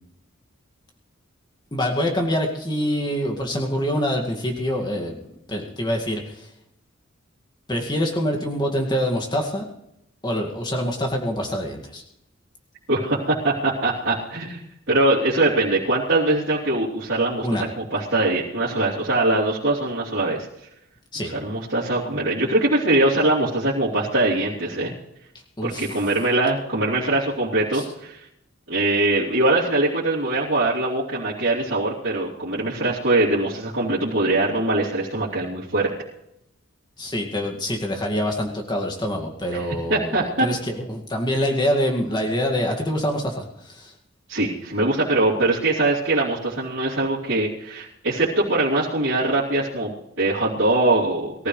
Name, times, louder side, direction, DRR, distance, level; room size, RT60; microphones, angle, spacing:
voice 1, 1.7-5.2 5.5-6.5 7.7-9.7 10.2-12.0 17.4-17.6 21.1-21.3 25.6-25.9 27.7-27.8 37.0-43.9, equal, 20° left, 2 dB, 2.2 m, -25 dB
voice 2, 12.9-14.6 14.9-20.5 21.4-24.9 25.6-28.2 28.7-35.9 39.5-39.6 39.9-40.4 44.3-51.5, right 2 dB, 65° right, -10 dB, 3.4 m, -22 dB
23.0 x 14.5 x 3.3 m, 0.81 s
head